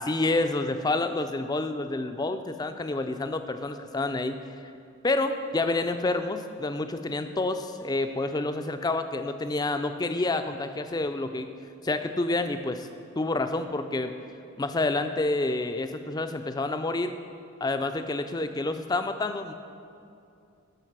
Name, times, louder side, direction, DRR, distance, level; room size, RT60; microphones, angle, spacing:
voice 1, 0.0-4.4 5.0-11.5 11.8-12.9 13.2-14.1 14.6-17.1 17.6-19.5, left 2 dB, 20° left, 8 dB, 0.3 m, -28 dB
12.0 x 5.0 x 6.0 m, 2.6 s
head